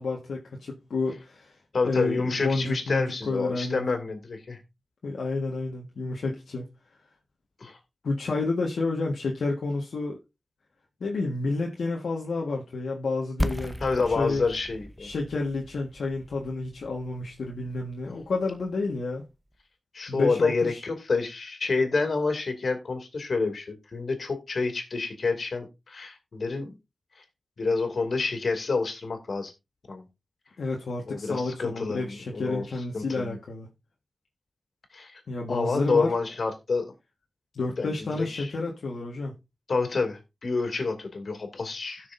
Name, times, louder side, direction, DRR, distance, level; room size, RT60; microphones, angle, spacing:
voice 1, 0.0-1.5 1.8-3.8 5.0-6.7 8.0-10.2 11.0-13.8 14.1-14.4 15.0-19.2 20.1-20.8 30.6-33.7 35.3-36.1 37.5-39.3, left 3 dB, 90° left, 1.4 m, -30 dB
voice 2, 1.7-4.6 7.6-7.8 13.8-15.1 18.0-18.1 19.9-26.7 27.6-29.5 29.9-30.1 31.1-32.6 32.9-33.4 34.9-35.2 35.5-36.9 37.8-38.5 39.7-42.1, left 4 dB, 70° left, 2.4 m, -28 dB
sound 1, 13.4-19.1, equal, 5° left, 0.8 m, -36 dB
17.0 x 6.2 x 2.6 m
cardioid pair, 60°, 0 cm